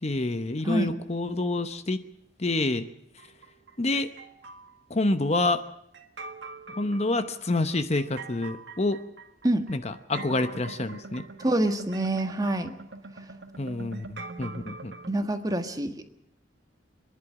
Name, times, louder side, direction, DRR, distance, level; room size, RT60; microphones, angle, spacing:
voice 1, 0.0-2.0 2.4-2.9 3.8-4.1 4.9-5.6 6.8-9.0 9.7-11.2 13.6-14.9, left 2 dB, 35° left, 10 dB, 0.9 m, -27 dB
voice 2, 0.6-0.9 9.4-9.6 11.4-12.7 15.1-16.0, right 1 dB, 20° right, 7 dB, 1.5 m, -26 dB
sound 1, 3.2-4.8 5.9-15.1, right 3 dB, 70° right, 1.7 m, -43 dB
25.5 x 11.0 x 9.9 m, 0.74 s
head